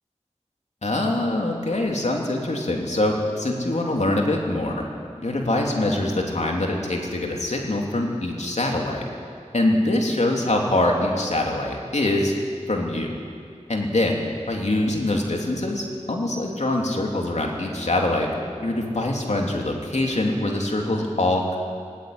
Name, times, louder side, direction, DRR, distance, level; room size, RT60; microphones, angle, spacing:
voice 1, 0.8-4.9 5.2-9.0 9.5-12.3 12.7-13.1 13.7-14.2 14.5-21.6, left 1 dB, 70° left, 0 dB, 3.0 m, -24 dB
17.5 x 16.5 x 9.5 m, 2.2 s
wide cardioid pair, 55°, 12 cm